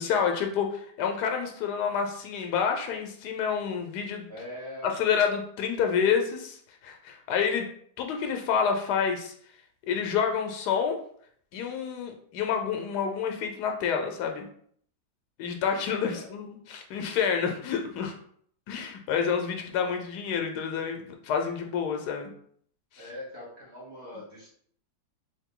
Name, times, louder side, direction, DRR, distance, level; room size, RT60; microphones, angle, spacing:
voice 1, 0.0-4.3 4.8-7.7 8.0-9.3 9.9-11.0 11.5-14.5 15.4-18.1 18.7-22.3, left 7 dB, 75° left, 4 dB, 1.1 m, -28 dB
voice 2, 4.3-5.0 16.1-16.4 22.9-24.5, left 1 dB, 45° right, -5 dB, 1.3 m, -42 dB
3.5 x 2.6 x 3.7 m, 0.62 s
omnidirectional pair, 1.8 m